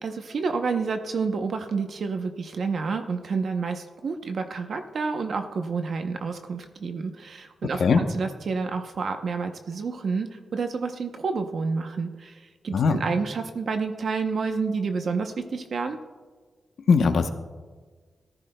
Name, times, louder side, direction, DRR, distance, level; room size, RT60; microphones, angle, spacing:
voice 1, 0.0-16.0, right 4 dB, 60° right, 6 dB, 0.7 m, -29 dB
voice 2, 16.9-17.3, left 5 dB, 75° left, 7 dB, 0.9 m, -19 dB
19.0 x 14.0 x 2.3 m, 1.4 s
wide cardioid pair, 150°, 0 cm